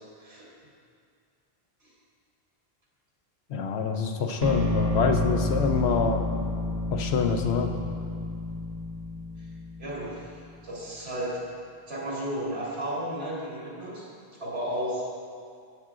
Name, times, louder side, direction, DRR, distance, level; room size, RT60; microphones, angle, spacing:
voice 1, 3.5-6.3 6.9-7.8, left 5 dB, 80° left, 4 dB, 1.0 m, -26 dB
sound 1, 4.4-10.4, left 1 dB, 40° right, 0.8 m, -30 dB
voice 2, 9.8-11.4 11.9-14.1 14.4-15.0, right 1 dB, 75° right, -7 dB, 2.9 m, -33 dB
13.5 x 8.4 x 2.4 m, 2.3 s
omnidirectional pair, 1.1 m